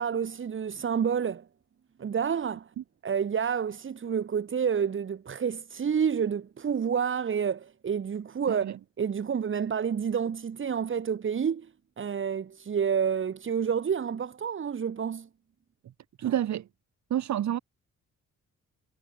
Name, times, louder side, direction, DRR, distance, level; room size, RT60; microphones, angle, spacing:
voice 1, 0.0-1.5 2.0-2.7 3.0-11.7 12.0-15.3, right 7 dB, 40° right, 3.3 m, -29 dB
voice 2, 16.2-16.6 17.1-17.6, right 11 dB, 70° right, 2.1 m, -28 dB
wide cardioid pair, 150°, 30 cm